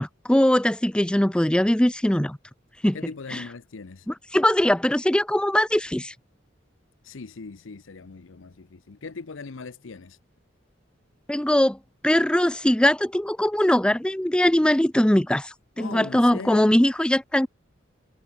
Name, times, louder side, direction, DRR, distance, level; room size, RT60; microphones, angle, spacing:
voice 1, 0.0-2.4 2.8-3.0 3.3-3.4 4.1-6.1 11.3-11.8 12.0-17.5, left 1 dB, 5° left, 0.4 m, -21 dB
voice 2, 2.9-4.1 7.0-10.2 15.8-16.8, left 4 dB, 90° left, 0.7 m, -39 dB
head